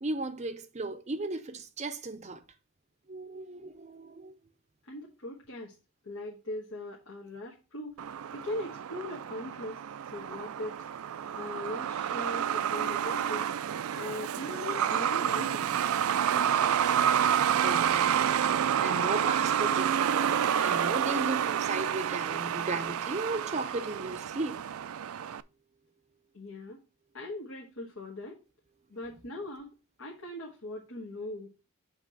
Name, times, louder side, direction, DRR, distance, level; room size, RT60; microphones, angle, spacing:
voice 1, 0.0-2.4 3.1-4.3 16.3-16.5 17.6-18.4 18.8-24.6, right 2 dB, 30° right, 0.6 m, -36 dB
voice 2, 4.9-5.7 6.0-8.0 8.3-9.8 10.1-10.8 11.3-13.5 14.0-15.7 26.3-26.8 27.1-28.4 28.9-31.5, left 1 dB, 75° left, 1.4 m, -40 dB
Truck, 8.0-25.4, right 9 dB, 80° right, 0.4 m, -29 dB
7.5 x 3.0 x 6.1 m
head